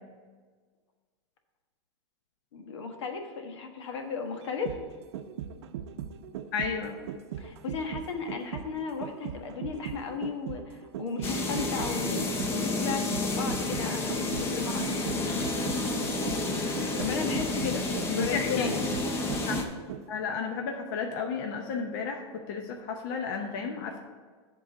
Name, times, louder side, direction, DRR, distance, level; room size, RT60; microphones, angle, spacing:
voice 1, 2.5-4.8 7.4-15.5 17.0-18.8, left 5 dB, 80° left, 4 dB, 1.3 m, -35 dB
sound 1, 4.4-20.3 20.6-20.7, right 9 dB, 70° right, 0.6 m, -39 dB
voice 2, 6.5-7.0 18.1-18.7 19.4-19.6 20.1-24.0, left 5 dB, 50° left, 3 dB, 0.8 m, -33 dB
sound 2, 11.2-19.6, left 2 dB, 15° left, 0.7 m, -30 dB
11.0 x 3.8 x 6.5 m, 1.5 s
supercardioid pair, 160°, 15 cm